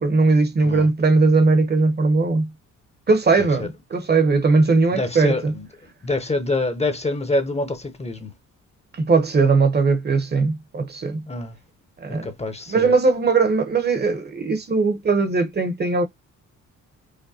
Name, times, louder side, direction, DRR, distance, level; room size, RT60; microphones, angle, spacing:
voice 1, 0.0-2.5 3.1-5.5 8.9-11.2 12.0-12.3 12.7-16.0, right 3 dB, 35° right, 1.0 m, -19 dB
voice 2, 4.9-5.7 6.0-8.3 11.3-11.6 12.1-12.9, left 2 dB, 20° left, 0.9 m, -26 dB
5.1 x 2.1 x 2.7 m
cardioid pair, 90°, 30 cm